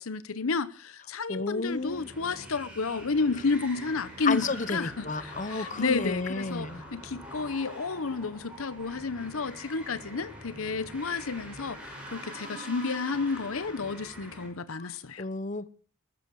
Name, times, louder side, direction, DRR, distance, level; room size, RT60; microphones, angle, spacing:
voice 1, 0.0-11.8 12.1-15.2, left 4 dB, 75° left, 0.8 m, -31 dB
voice 2, 1.3-2.1 4.2-6.8 14.8-14.9 15.2-15.7, left 3 dB, 35° left, 0.9 m, -32 dB
sound 1, 1.6-14.5, equal, 5° right, 6.7 m, -44 dB
21.0 x 14.0 x 4.7 m
head